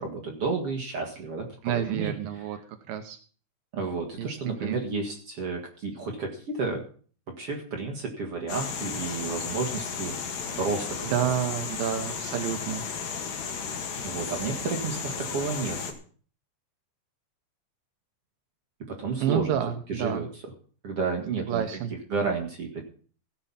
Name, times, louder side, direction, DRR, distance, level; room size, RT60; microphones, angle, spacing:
voice 1, 0.0-2.4 3.7-6.8 7.3-10.1 10.6-11.2 14.0-15.9 18.9-19.6 19.9-20.3 20.8-21.8 22.1-22.8, right 4 dB, 55° right, 1 dB, 1.7 m, -31 dB
voice 2, 1.6-2.6 2.9-3.2 4.2-4.8 11.1-12.8 19.2-20.3 21.5-21.9, right 9 dB, 90° right, 8 dB, 2.0 m, -29 dB
sound 1, 8.5-15.9, left 6 dB, 55° left, 3.2 m, -34 dB
16.0 x 8.0 x 5.7 m, 0.43 s
omnidirectional pair, 5.4 m